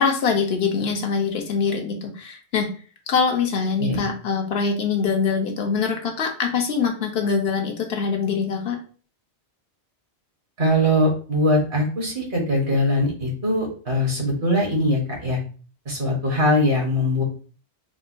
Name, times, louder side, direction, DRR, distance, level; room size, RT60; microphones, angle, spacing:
voice 1, 0.0-2.7 3.1-8.8, left 5 dB, 70° left, 3 dB, 0.8 m, -23 dB
voice 2, 10.6-15.4 15.8-17.2, left 1 dB, 50° right, -2 dB, 1.1 m, -21 dB
3.7 x 2.1 x 2.4 m, 0.39 s
omnidirectional pair, 1.1 m